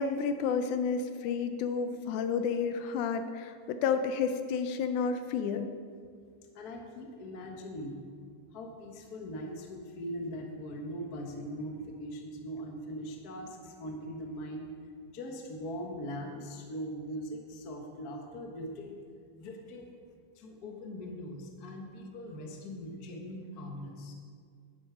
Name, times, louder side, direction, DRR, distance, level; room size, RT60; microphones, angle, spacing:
voice 1, 0.0-5.7, left 6 dB, 80° left, 8 dB, 1.9 m, -31 dB
voice 2, 6.5-8.0 8.5-14.7 15.1-19.0 19.4-19.9 20.4-24.1, equal, 60° left, 1 dB, 1.0 m, -41 dB
11.0 x 8.9 x 5.0 m, 2.1 s
omnidirectional pair, 3.7 m